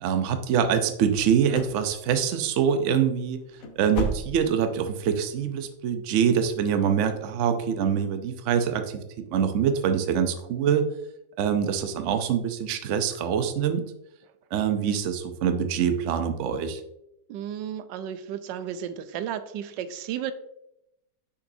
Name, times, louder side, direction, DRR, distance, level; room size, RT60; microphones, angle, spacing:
voice 1, 0.0-3.4 3.8-10.9 11.4-13.8 14.5-16.8, right 8 dB, 60° right, 7 dB, 0.8 m, -25 dB
sound 1, 1.1-1.8 2.1-2.5 2.8-3.0 3.4-4.7 5.0-5.1 5.6-5.7, left 1 dB, 60° left, 1.1 m, -33 dB
voice 2, 17.3-20.3, right 9 dB, 90° right, 11 dB, 1.2 m, -33 dB
6.8 x 5.6 x 2.6 m, 0.83 s
omnidirectional pair, 1.9 m